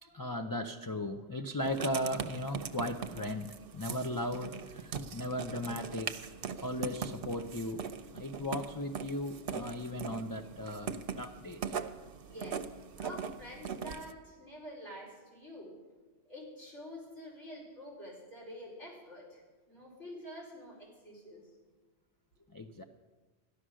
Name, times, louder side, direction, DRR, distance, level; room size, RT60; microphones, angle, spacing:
voice 1, 0.0-6.2 6.6-11.8 22.5-22.8, left 1 dB, 30° left, 5 dB, 0.4 m, -37 dB
Writing, 1.6-14.1, right 6 dB, 60° right, 0.8 m, -41 dB
voice 2, 12.3-12.6 13.0-15.7 16.2-19.4 19.7-21.4, equal, 90° left, -3 dB, 4.8 m, -47 dB
13.5 x 11.5 x 6.3 m, 1.3 s
omnidirectional pair, 1.2 m